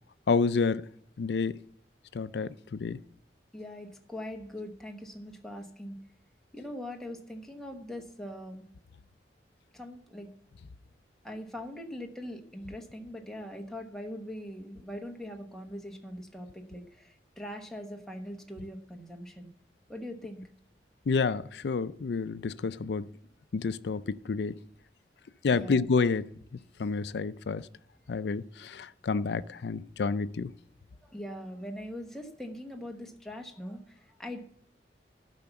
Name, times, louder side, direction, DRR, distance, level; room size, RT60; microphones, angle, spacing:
voice 1, 0.3-0.8 1.2-1.6 2.1-3.0 21.1-23.1 23.5-24.6 25.4-26.3 26.8-27.7 28.1-30.5, left 4 dB, 70° left, 0.4 m, -29 dB
voice 2, 3.5-6.0 6.5-8.6 9.7-10.3 11.2-19.5 19.9-20.4 25.5-25.9 31.1-34.4, left 1 dB, 5° left, 1.1 m, -41 dB
12.0 x 5.8 x 7.0 m
head